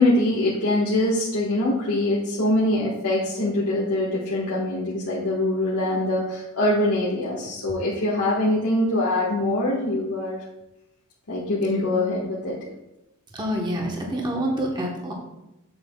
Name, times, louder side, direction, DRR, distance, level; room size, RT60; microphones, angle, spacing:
voice 1, 0.0-10.4 11.3-12.6, left 1 dB, 80° left, -7 dB, 1.5 m, -23 dB
voice 2, 13.3-15.1, right 1 dB, 20° right, -1 dB, 1.1 m, -27 dB
7.7 x 7.6 x 2.3 m, 0.93 s
head